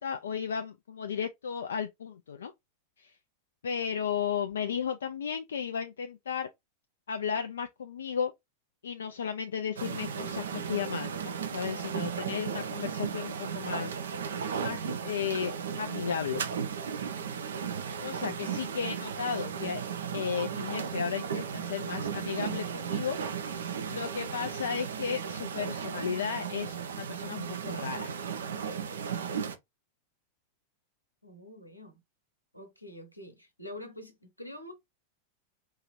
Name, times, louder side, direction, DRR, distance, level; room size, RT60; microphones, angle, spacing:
voice 1, 0.0-2.5 3.0-3.1 3.6-6.5 7.1-8.3 8.8-13.9 14.6-16.4 18.0-19.8 20.1-23.2 23.9-28.1, left 7 dB, 65° left, 0.3 m, -34 dB
sound 1, 9.8-29.6, right 7 dB, 65° right, 0.5 m, -35 dB
voice 2, 31.2-32.0 32.5-34.7, left 1 dB, 90° left, 1.0 m, -46 dB
4.6 x 2.8 x 3.0 m
figure-of-eight pair, 90°, 0 cm